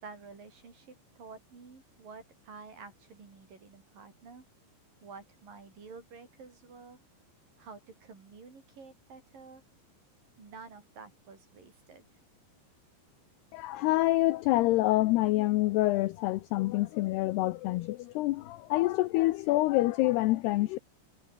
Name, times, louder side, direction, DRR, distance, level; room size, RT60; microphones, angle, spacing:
voice 1, 0.0-4.4 5.0-7.0 7.6-9.6 10.4-12.1, right 4 dB, 45° right, 7.0 m, -50 dB
voice 2, 13.5-20.8, left 18 dB, 80° left, 2.4 m, -27 dB
omnidirectional pair, 5.4 m